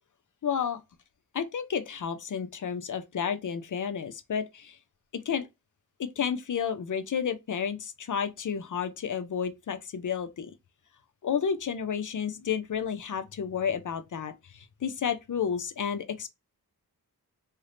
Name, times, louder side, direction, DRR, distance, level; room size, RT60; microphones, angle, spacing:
voice 1, 0.4-0.8 1.3-4.8 5.1-5.5 6.0-10.5 11.2-16.3, left 7 dB, 55° left, 0.5 m, -31 dB
2.7 x 2.4 x 3.3 m
wide cardioid pair, 85°, 38 cm